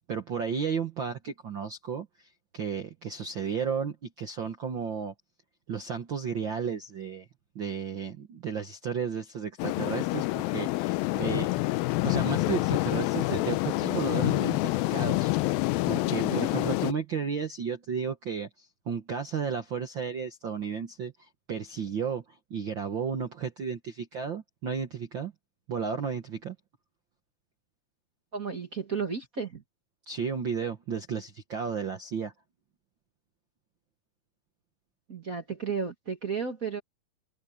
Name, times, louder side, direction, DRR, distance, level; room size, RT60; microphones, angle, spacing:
voice 1, 0.0-2.3 2.5-5.1 5.7-7.3 7.5-11.5 12.0-15.6 15.9-22.2 22.5-25.3 25.7-26.5 30.1-32.3, right 6 dB, 60° right, 1.2 m, -33 dB
sound 1, 9.6-16.9, left 20 dB, 90° left, 2.5 m, -27 dB
voice 2, 16.1-16.5 28.3-29.6 35.1-36.8, right 5 dB, 35° right, 1.3 m, -33 dB
omnidirectional pair, 4.1 m